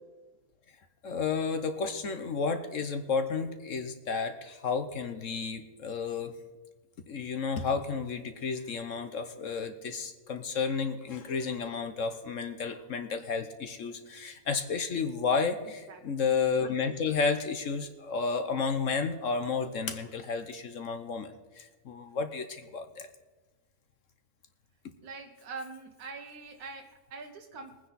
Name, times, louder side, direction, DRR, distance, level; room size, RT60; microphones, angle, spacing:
voice 1, 1.0-6.3 7.1-23.1, left 5 dB, 60° left, 8 dB, 1.2 m, -32 dB
voice 2, 15.6-16.0 25.0-27.8, right 4 dB, 80° right, 3 dB, 1.6 m, -44 dB
21.5 x 9.8 x 4.1 m, 1.2 s
omnidirectional pair, 1.6 m